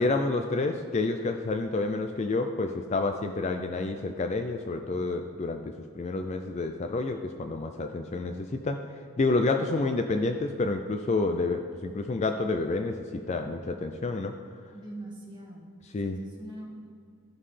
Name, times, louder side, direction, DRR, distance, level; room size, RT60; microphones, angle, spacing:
voice 1, 0.0-14.3 15.9-16.2, left 3 dB, 30° left, 5 dB, 0.3 m, -29 dB
voice 2, 14.7-15.7 16.0-16.8, right 1 dB, 20° right, -4 dB, 1.6 m, -42 dB
14.0 x 5.6 x 3.3 m, 2.2 s
head